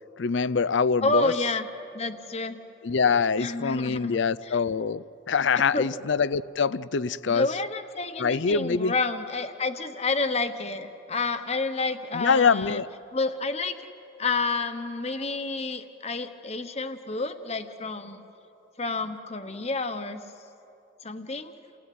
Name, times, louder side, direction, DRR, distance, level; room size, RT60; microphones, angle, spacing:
voice 1, 0.2-1.3 2.8-7.5 8.2-8.9 12.1-12.9, left 5 dB, 65° left, 18 dB, 0.5 m, -24 dB
voice 2, 1.0-1.7 1.9-2.6 3.4-4.2 4.4-4.6 5.7-5.9 7.3-12.8 13.1-13.9 14.2-18.2 18.8-20.2 21.0-21.5, left 3 dB, 30° left, 9 dB, 1.2 m, -29 dB
29.0 x 16.5 x 9.5 m, 2.9 s
head